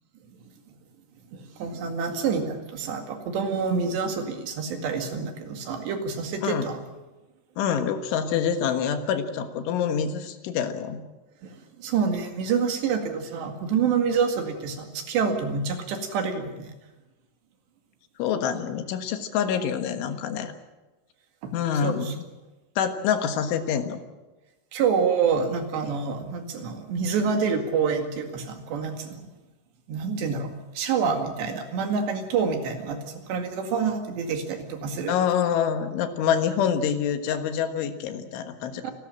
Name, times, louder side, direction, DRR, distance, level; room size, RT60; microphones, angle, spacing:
voice 1, 1.3-6.8 11.4-16.7 21.4-21.5 21.8-22.1 24.7-29.3 29.9-35.2 38.8-38.9, right 5 dB, 65° right, 5 dB, 4.1 m, -27 dB
voice 2, 7.6-11.0 18.2-20.5 21.5-22.2 22.8-24.0 35.1-38.9, left 8 dB, 80° left, 8 dB, 3.9 m, -26 dB
28.5 x 13.0 x 8.9 m, 1.1 s
omnidirectional pair, 5.5 m